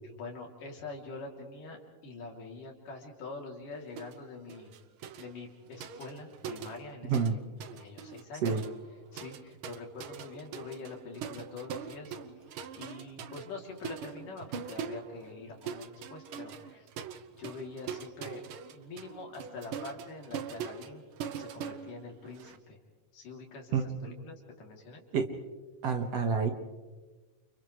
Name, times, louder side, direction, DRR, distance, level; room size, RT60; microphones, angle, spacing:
voice 1, 0.1-4.8 5.2-7.1 7.7-8.6 9.1-12.2 12.7-16.9 17.4-21.0 21.4-22.8 23.1-23.8 24.0-25.0, left 3 dB, 80° left, -1 dB, 4.8 m, -45 dB
sound 1, 4.0-4.2 4.5-7.3 7.6-22.6, right 7 dB, 80° right, 1.1 m, -42 dB
voice 2, 7.0-7.3 8.4-8.6 23.7-24.2 25.1-25.3 25.8-26.5, right 5 dB, 55° right, 4 dB, 2.5 m, -29 dB
30.0 x 29.5 x 3.3 m, 1.3 s
omnidirectional pair, 3.7 m